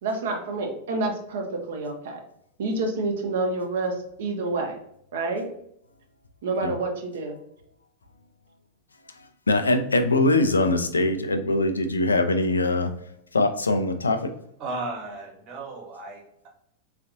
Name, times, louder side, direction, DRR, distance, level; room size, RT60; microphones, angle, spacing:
voice 1, 0.0-2.2 2.6-4.8 5.1-5.5 6.4-7.4, right 3 dB, 60° right, 2 dB, 0.6 m, -28 dB
voice 2, 9.2-12.9 13.3-14.3, left 2 dB, 75° left, 7 dB, 0.3 m, -22 dB
voice 3, 14.6-16.5, right 2 dB, 40° right, 0 dB, 1.0 m, -35 dB
3.6 x 2.4 x 2.6 m, 0.72 s
figure-of-eight pair, 90°, 0 cm